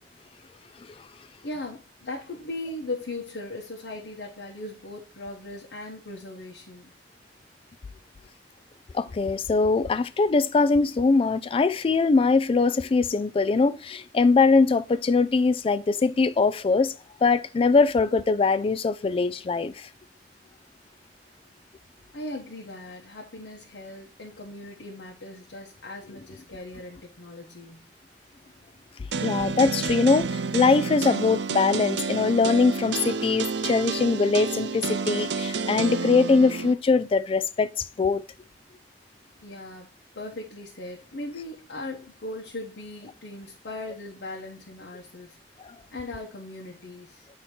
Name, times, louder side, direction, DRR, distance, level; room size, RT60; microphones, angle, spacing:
voice 1, 1.4-6.9 22.1-27.9 39.4-39.9 40.1-45.4 45.9-47.3, left 2 dB, 80° left, 0.9 m, -38 dB
voice 2, 8.9-16.9 17.2-19.9 29.2-38.2, left 4 dB, 30° left, 0.3 m, -22 dB
sound 1, 29.1-36.7, right 4 dB, 85° right, 0.5 m, -29 dB
8.1 x 2.9 x 4.3 m
head